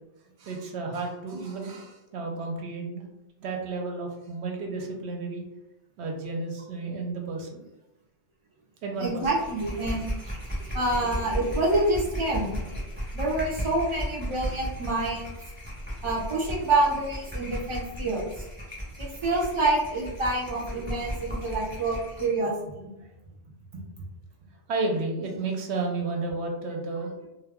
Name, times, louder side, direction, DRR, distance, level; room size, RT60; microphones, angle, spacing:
voice 1, 0.4-3.0 3.4-5.4 6.0-7.6 8.8-9.3 10.6-10.8 23.0-23.1 24.7-27.1, right 3 dB, 70° right, 1 dB, 0.8 m, -32 dB
sound 1, 9.0-22.4, equal, 10° right, 0.9 m, -35 dB
voice 2, 9.0-10.1 10.7-12.6 13.1-15.3 16.0-18.4 19.0-22.5, right 2 dB, 45° right, -3 dB, 0.4 m, -27 dB
2.2 x 2.0 x 3.4 m, 0.95 s
omnidirectional pair, 1.3 m